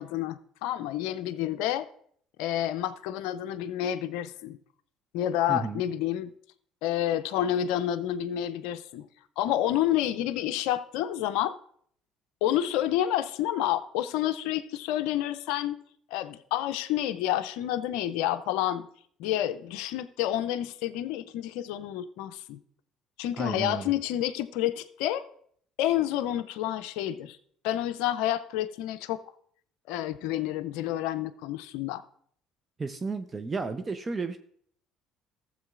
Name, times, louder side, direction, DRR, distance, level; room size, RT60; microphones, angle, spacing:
voice 1, 0.0-1.9 2.4-4.6 5.1-6.3 6.8-9.1 9.4-11.5 12.4-15.8 16.1-18.9 19.2-22.6 23.2-25.2 25.8-27.4 27.6-29.2 29.9-32.0, left 12 dB, 75° left, 11 dB, 0.4 m, -29 dB
voice 2, 5.5-5.8 23.4-23.9 32.8-34.4, right 4 dB, 30° right, 9 dB, 0.7 m, -32 dB
15.0 x 7.4 x 2.4 m, 0.63 s
hypercardioid pair, 65°, 0 cm